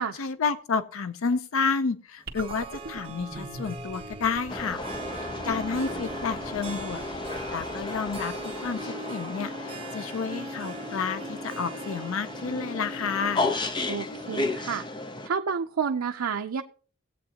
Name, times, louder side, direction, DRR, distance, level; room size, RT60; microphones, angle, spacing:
voice 1, 0.0-13.5, left 5 dB, 80° left, 13 dB, 0.5 m, -31 dB
Harp, 2.3-14.5, right 2 dB, 25° right, 0.8 m, -40 dB
sound 1, 2.3-8.8, right 2 dB, 45° right, 1.5 m, -44 dB
sound 2, 4.5-15.3, left 3 dB, 20° left, 0.6 m, -34 dB
voice 2, 13.9-14.9 15.2-16.6, right 6 dB, 85° right, 4 dB, 0.5 m, -30 dB
17.5 x 8.4 x 2.8 m, 0.43 s
head